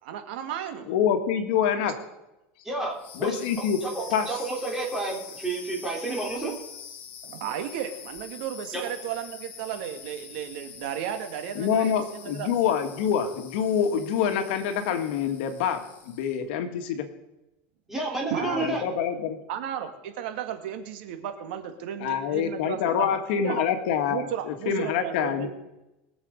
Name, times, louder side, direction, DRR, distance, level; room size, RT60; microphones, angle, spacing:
voice 1, 0.0-0.9 7.2-12.5 18.3-18.9 19.5-23.2 23.4-23.7 24.1-25.5, right 9 dB, 70° right, 7 dB, 1.9 m, -34 dB
voice 2, 0.9-1.9 3.1-3.8 4.1-4.4 11.5-17.1 18.4-19.4 22.0-25.5, left 8 dB, 65° left, 7 dB, 1.7 m, -26 dB
voice 3, 2.6-3.4 3.8-6.6 8.7-8.8 17.9-18.8, right 2 dB, 5° right, -2 dB, 3.7 m, -30 dB
sound 1, 2.9-16.4, left 7 dB, 35° left, 1.9 m, -45 dB
22.0 x 7.5 x 5.3 m, 0.94 s
supercardioid pair, 155°, 6 cm